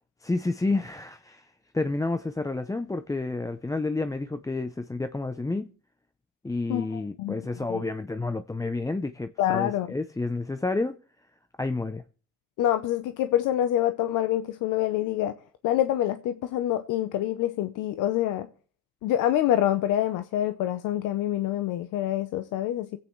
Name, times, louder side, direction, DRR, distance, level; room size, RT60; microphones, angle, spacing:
voice 1, 0.2-5.7 6.4-11.0 11.6-12.0, left 3 dB, 10° left, 0.5 m, -30 dB
voice 2, 6.7-7.4 7.7-7.8 9.4-9.9 12.6-15.3 15.6-18.5 19.0-23.0, left 12 dB, 90° left, 0.7 m, -26 dB
25.5 x 8.8 x 3.1 m
cardioid pair, 90°, 30 cm